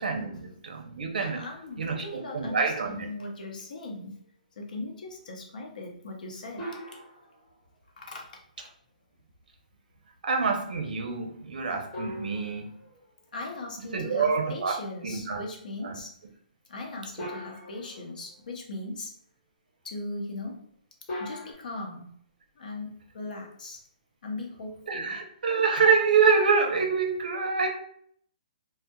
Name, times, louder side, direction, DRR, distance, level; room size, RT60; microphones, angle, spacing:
voice 1, 0.0-1.4 1.8-3.1 10.2-12.7 13.9-15.4 15.8-15.9 17.2-17.3 24.9-27.7, right 5 dB, 75° right, 3 dB, 0.6 m, -26 dB
voice 2, 1.2-4.2 4.6-6.8 8.0-8.3 8.6-8.7 13.3-16.1 16.7-19.1 19.8-20.7 21.2-22.2 22.6-23.8 24.2-25.2, left 2 dB, 70° left, 1 dB, 0.7 m, -39 dB
sound 1, 6.6-7.6 11.9-13.5 17.2-18.3 21.1-21.5, left 1 dB, 20° left, 1.2 m, -40 dB
2.7 x 2.1 x 2.2 m, 0.63 s
hypercardioid pair, 160°, 5 cm